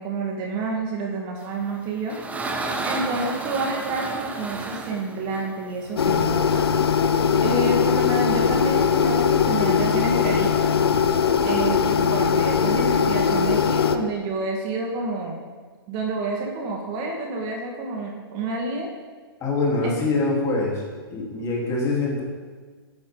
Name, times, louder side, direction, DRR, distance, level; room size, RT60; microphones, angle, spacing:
voice 1, 0.0-2.2 2.8-6.7 7.4-10.8 11.4-15.4 15.9-18.9 19.8-19.9, right 3 dB, 35° right, 0 dB, 1.8 m, -29 dB
sound 1, 1.6-6.3, right 3 dB, 10° right, 1.1 m, -31 dB
sound 2, 6.0-14.0, left 6 dB, 75° left, 0.8 m, -20 dB
voice 2, 19.4-20.8 21.1-22.2, left 3 dB, 25° left, -3 dB, 3.7 m, -24 dB
15.0 x 9.3 x 3.9 m, 1.5 s
hypercardioid pair, 135°, 13 cm